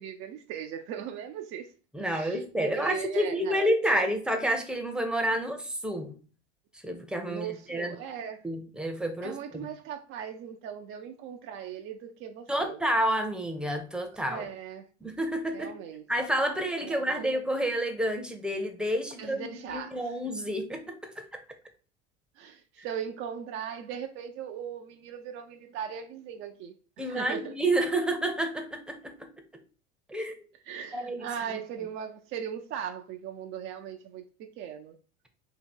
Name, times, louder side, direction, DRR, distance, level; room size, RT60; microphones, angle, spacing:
voice 1, 0.0-1.7 2.0-4.1 7.3-8.5 9.2-12.8 14.3-14.9 15.5-16.0 16.8-17.3 19.2-20.2 22.4-27.5 30.6-34.2 34.6-35.0, right 8 dB, 40° right, 0.4 m, -39 dB
voice 2, 1.9-6.1 6.8-8.0 8.4-9.7 12.5-14.5 15.0-15.7 16.1-21.2 27.0-29.1 30.1-30.3 30.9-31.3, right 1 dB, 5° right, 0.7 m, -29 dB
2.9 x 2.8 x 4.3 m
hypercardioid pair, 85°, 34 cm